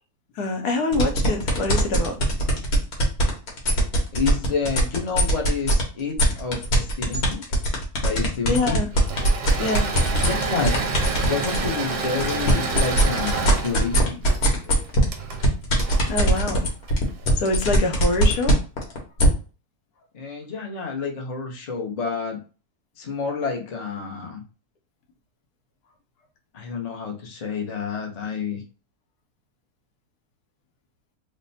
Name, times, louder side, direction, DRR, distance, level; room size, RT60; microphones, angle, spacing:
voice 1, 0.4-2.2 8.5-8.9 9.6-9.9 16.1-16.7 17.4-18.5, left 2 dB, 90° left, 5 dB, 1.2 m, -25 dB
sound 1, 0.9-5.8 6.2-11.7 12.1-19.3, right 1 dB, 75° left, 1.5 m, -21 dB
voice 2, 4.1-7.4 8.0-8.8 10.2-10.8 11.3-14.3 14.7-14.8 20.1-22.4 23.0-24.4 26.5-28.6, left 5 dB, 40° left, 1 dB, 0.6 m, -29 dB
Engine / Mechanisms, 8.9-17.3, right 4 dB, 85° right, 1.2 m, -29 dB
3.2 x 2.1 x 4.0 m, 0.35 s
omnidirectional pair, 1.7 m